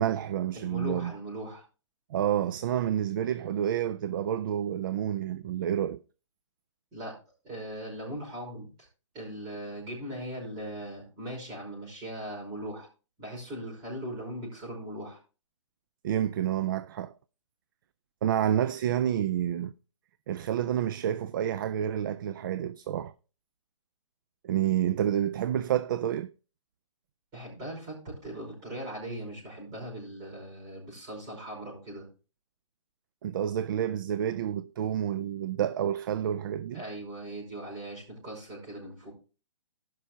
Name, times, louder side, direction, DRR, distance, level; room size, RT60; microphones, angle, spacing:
voice 1, 0.0-1.1 2.1-6.0 16.0-17.1 18.2-19.7 20.3-23.1 24.4-26.3 33.2-36.8, right 10 dB, 40° right, 0.4 m, -29 dB
voice 2, 0.5-1.6 6.9-7.1 7.4-8.7 9.1-12.9 13.2-15.2 27.3-32.1 36.7-39.1, right 1 dB, 20° right, 5.3 m, -39 dB
17.0 x 5.9 x 2.9 m
hypercardioid pair, 150°, 17 cm